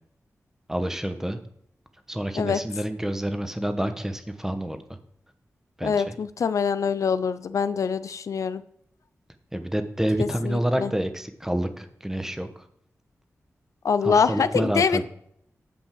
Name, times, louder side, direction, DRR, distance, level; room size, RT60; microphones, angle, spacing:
voice 1, 0.7-1.4 2.1-4.8 5.8-6.1 9.5-12.5 14.0-15.0, right 1 dB, 10° right, 8 dB, 1.0 m, -28 dB
voice 2, 5.8-8.6 10.2-10.9 13.8-15.0, left 6 dB, 80° left, 14 dB, 0.4 m, -24 dB
8.9 x 5.3 x 7.6 m, 0.71 s
wide cardioid pair, 95°, 5 cm